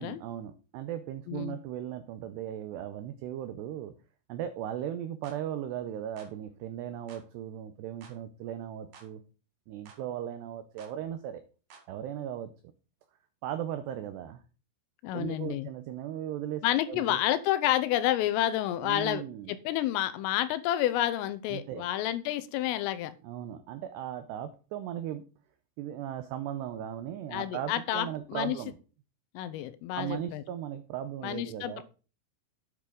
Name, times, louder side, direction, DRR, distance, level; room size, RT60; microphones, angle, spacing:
voice 1, 0.0-3.9 4.3-9.2 9.7-11.4 11.9-12.5 13.4-14.4 15.1-17.2 18.8-19.5 21.5-21.9 23.2-25.3 25.8-28.7 30.0-31.8, right 11 dB, 90° right, 10 dB, 2.4 m, -37 dB
sound 1, 5.2-5.4 6.2-6.4 7.1-7.3 8.0-8.2 8.9-9.1 9.9-10.0 10.8-11.0 11.7-11.9, right 5 dB, 55° right, 2.4 m, -53 dB
voice 2, 15.0-15.7 16.6-19.2 19.5-23.1 27.3-28.6 29.3-30.4 31.2-31.8, left 13 dB, 85° left, 13 dB, 3.4 m, -29 dB
9.5 x 8.5 x 3.9 m, 0.35 s
omnidirectional pair, 5.9 m